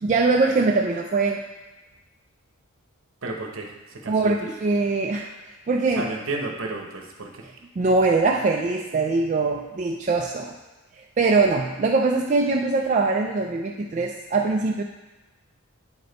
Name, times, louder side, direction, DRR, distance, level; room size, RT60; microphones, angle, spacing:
voice 1, 0.0-1.4 4.1-5.3 5.7-6.1 7.8-10.5 11.2-14.8, right 3 dB, 35° right, 1 dB, 0.3 m, -22 dB
voice 2, 3.2-4.5 6.0-7.5, right 2 dB, 60° right, 3 dB, 0.9 m, -32 dB
8.7 x 5.0 x 4.0 m, 1.2 s
head